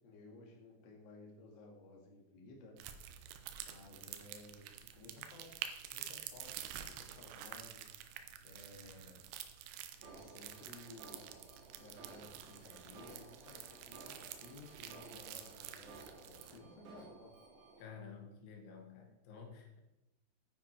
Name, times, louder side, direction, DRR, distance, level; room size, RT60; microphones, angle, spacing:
voice 1, 0.0-2.8 3.6-9.2 10.0-11.3 11.8-17.3, left 2 dB, 40° left, 0 dB, 1.6 m, -57 dB
sound 1, 2.8-16.6, right 10 dB, 85° right, 3.0 m, -49 dB
Alarm, 10.0-17.8, right 3 dB, 65° right, 4.6 m, -57 dB
voice 2, 17.8-19.8, left 6 dB, 80° left, 3 dB, 4.1 m, -52 dB
9.9 x 9.7 x 4.6 m, 0.94 s
omnidirectional pair, 5.3 m